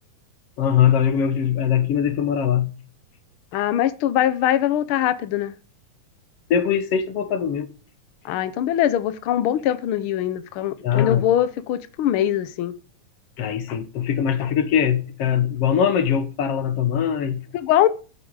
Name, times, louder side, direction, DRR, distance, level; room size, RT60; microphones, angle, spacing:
voice 1, 0.6-2.7 6.5-7.7 10.8-11.2 13.4-17.4, left 8 dB, 60° left, 2.1 m, -21 dB
voice 2, 3.5-5.5 8.2-12.8 17.5-17.9, left 11 dB, 85° left, 1.2 m, -22 dB
12.0 x 9.0 x 4.8 m
omnidirectional pair, 3.4 m